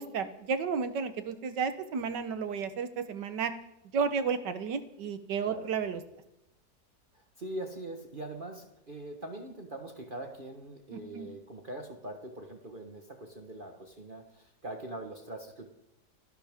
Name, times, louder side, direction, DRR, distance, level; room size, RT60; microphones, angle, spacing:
voice 1, 0.0-3.5 3.9-6.0 10.9-11.3, right 6 dB, 90° right, 10 dB, 1.8 m, -32 dB
voice 2, 5.4-5.7 7.1-15.7, right 1 dB, 30° right, 3 dB, 1.4 m, -42 dB
29.5 x 11.5 x 3.6 m, 0.87 s
omnidirectional pair, 1.8 m